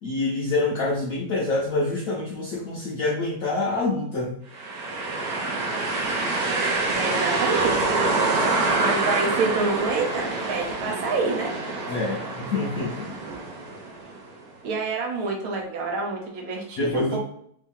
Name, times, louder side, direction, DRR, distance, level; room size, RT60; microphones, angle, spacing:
voice 1, 0.0-4.4 11.9-13.1 16.8-17.2, left 2 dB, 70° left, -3 dB, 0.8 m, -26 dB
sound 1, 4.5-14.3, right 3 dB, 65° right, 1.0 m, -26 dB
voice 2, 7.0-7.9 8.8-11.5 14.6-17.2, right 4 dB, 80° right, 1 dB, 1.7 m, -27 dB
3.5 x 2.8 x 3.6 m, 0.67 s
omnidirectional pair, 2.3 m